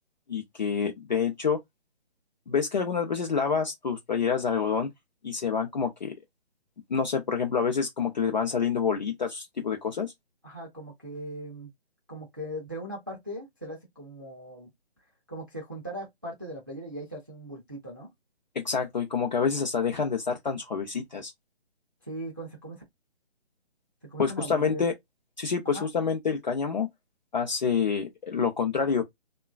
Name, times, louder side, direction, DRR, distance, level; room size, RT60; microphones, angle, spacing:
voice 1, 0.3-1.6 2.5-4.9 5.2-6.1 6.9-10.1 18.6-21.3 24.2-24.9 25.4-26.9 27.3-29.0, left 6 dB, 45° left, 0.5 m, -27 dB
voice 2, 10.4-11.7 12.1-14.7 15.3-18.1 22.0-22.8 24.0-24.8 25.6-25.9, right 1 dB, 20° right, 0.4 m, -39 dB
2.9 x 2.2 x 2.3 m
hypercardioid pair, 160°, 33 cm